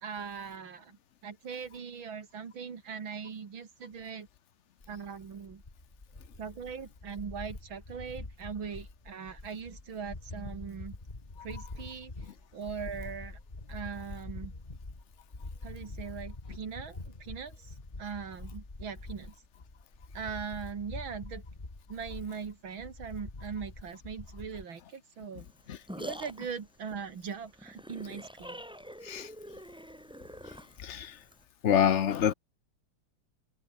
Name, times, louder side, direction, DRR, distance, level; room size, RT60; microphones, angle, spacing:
voice 1, 0.0-1.0 1.2-4.3 4.9-5.6 6.4-11.0 11.4-12.1 12.5-13.4 13.7-14.5 15.6-19.3 20.1-21.4 21.9-25.5 26.0-28.6, right 6 dB, 65° right, 3.1 m, -40 dB
sound 1, 4.8-24.6, left 2 dB, 20° left, 2.4 m, -45 dB
sound 2, 25.4-31.4, equal, ahead, 6.0 m, -45 dB
voice 2, 31.6-32.3, left 9 dB, 65° left, 0.7 m, -26 dB
omnidirectional pair, 2.4 m